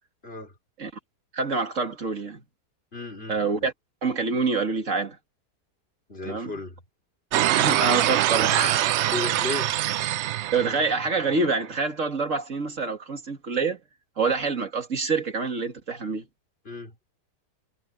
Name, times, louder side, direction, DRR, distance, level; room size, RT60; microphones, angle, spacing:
voice 1, 0.2-0.5 2.9-3.7 6.1-6.8 9.1-9.7 16.6-17.0, left 3 dB, 35° left, 4.9 m, -35 dB
voice 2, 1.3-2.4 3.3-3.7 4.0-5.2 6.2-6.5 7.5-8.9 10.5-13.8 14.2-16.3, right 4 dB, 50° right, 2.5 m, -26 dB
sound 1, 7.3-11.4, right 13 dB, 75° right, 0.6 m, -24 dB
omnidirectional pair, 1.7 m